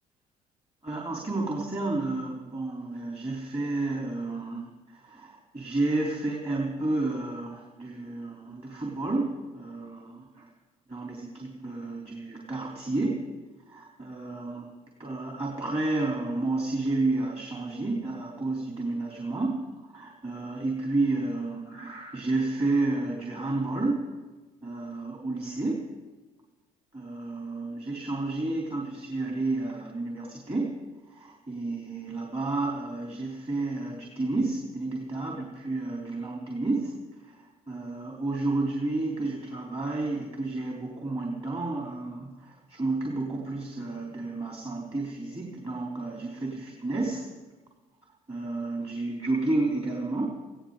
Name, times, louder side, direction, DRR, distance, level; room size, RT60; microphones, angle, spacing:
voice 1, 0.8-10.4 10.9-13.2 13.7-14.7 15.0-19.6 19.9-24.0 24.6-25.9 26.9-30.7 31.1-36.9 37.2-37.3 37.7-47.3 48.3-50.4, right 2 dB, 30° right, -2 dB, 3.6 m, -31 dB
20.0 x 16.0 x 4.0 m, 1.3 s
figure-of-eight pair, 50°, 20 cm